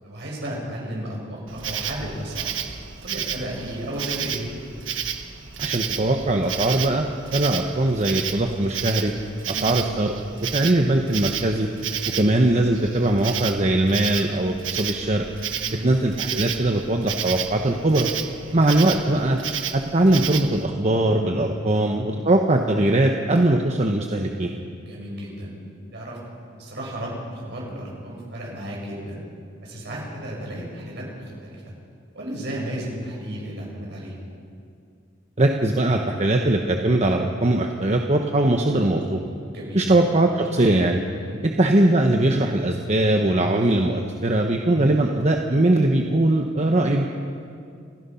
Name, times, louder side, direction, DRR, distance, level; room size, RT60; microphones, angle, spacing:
voice 1, 0.0-2.6 3.0-4.5 9.4-9.7 12.0-12.3 15.6-15.9 21.6-21.9 24.8-25.5 25.9-26.2 26.6-29.2 29.6-31.7 32.1-34.1 39.4-39.9 41.2-41.4, right 1 dB, 60° right, -3 dB, 7.2 m, -34 dB
Insect, 1.5-20.7, right 8 dB, 80° right, 1.3 m, -32 dB
voice 2, 5.6-9.1 9.5-10.1 10.4-11.7 12.1-15.2 15.8-18.1 18.5-19.4 19.7-24.5 35.4-39.2 39.7-41.0 41.4-47.1, right 1 dB, 35° right, 3 dB, 1.0 m, -21 dB
29.5 x 15.5 x 5.7 m, 2.3 s
head